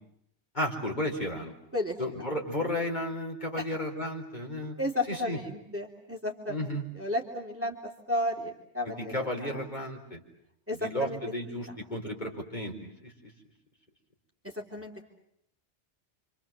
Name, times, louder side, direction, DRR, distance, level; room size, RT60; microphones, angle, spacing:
voice 1, 0.5-1.5 2.0-4.7 5.1-5.4 6.5-6.8 8.8-10.2 10.7-12.7 13.0-13.3, left 1 dB, 40° left, 1 dB, 4.6 m, -33 dB
voice 2, 4.8-6.6 6.9-7.8 8.1-9.6 10.7-11.2 14.5-15.0, left 1 dB, 10° right, 1 dB, 3.2 m, -33 dB
30.0 x 26.5 x 7.6 m, 0.74 s
omnidirectional pair, 1.2 m